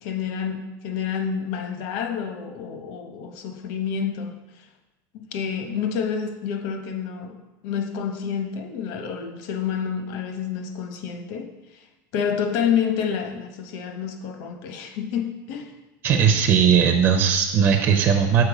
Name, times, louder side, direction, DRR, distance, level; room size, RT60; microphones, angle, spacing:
voice 1, 0.0-4.7 5.1-7.4 7.6-11.8 12.1-15.7 16.7-16.8, left 7 dB, 50° left, 5 dB, 0.9 m, -29 dB
voice 2, 16.0-18.4, right 7 dB, 30° right, 3 dB, 0.4 m, -18 dB
6.6 x 4.5 x 4.9 m, 1.0 s
cardioid pair, 175°, 10 cm